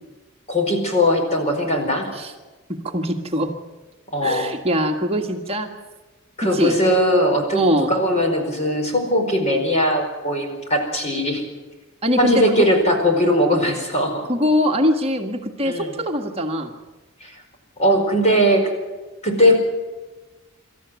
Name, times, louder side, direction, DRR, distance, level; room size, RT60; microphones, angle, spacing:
voice 1, 0.5-2.1 4.1-4.5 6.4-11.4 12.2-14.3 15.6-15.9 17.2-17.3 17.8-18.6 19.2-19.7, equal, 30° left, 3 dB, 5.0 m, -19 dB
voice 2, 2.8-3.5 4.2-5.7 6.5-6.7 7.5-7.9 12.0-12.7 14.3-16.7, equal, 25° right, 3 dB, 1.7 m, -22 dB
26.0 x 14.0 x 9.4 m, 1.2 s
head